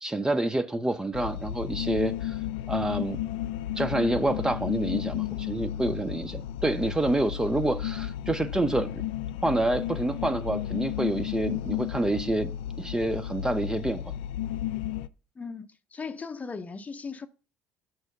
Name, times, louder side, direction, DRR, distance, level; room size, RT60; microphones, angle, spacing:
voice 1, 0.0-2.4 2.7-3.2 3.8-9.0 9.4-12.5 12.8-14.0, right 2 dB, 10° right, 0.6 m, -28 dB
sound 1, 1.1-15.1, left 12 dB, 85° left, 0.3 m, -33 dB
voice 2, 15.4-17.3, left 5 dB, 25° left, 0.7 m, -38 dB
6.3 x 4.6 x 5.2 m
supercardioid pair, 75°, 5 cm